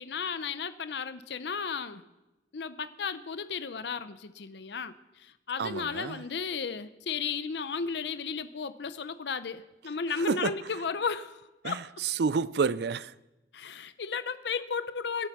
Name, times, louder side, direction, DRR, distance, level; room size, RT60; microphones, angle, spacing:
voice 1, 0.0-2.0 2.5-11.4 11.6-11.8 13.5-15.3, left 5 dB, 65° left, 0.6 m, -34 dB
voice 2, 5.6-6.2 10.2-10.6 11.6-13.1, right 5 dB, 60° right, 0.4 m, -29 dB
22.0 x 7.9 x 6.1 m
head